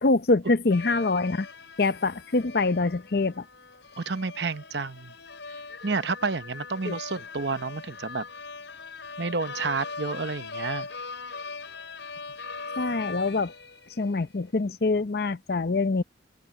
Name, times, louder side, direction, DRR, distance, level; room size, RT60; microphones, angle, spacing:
voice 1, 0.0-1.5 1.8-3.4 6.8-7.0 12.8-13.5 14.0-16.0, left 3 dB, 55° left, 0.7 m, -25 dB
sound 1, 0.7-14.4, left 4 dB, 75° left, 5.3 m, -40 dB
voice 2, 4.0-5.1 5.8-8.3 9.2-10.9, right 4 dB, 65° right, 0.9 m, -30 dB
open air
head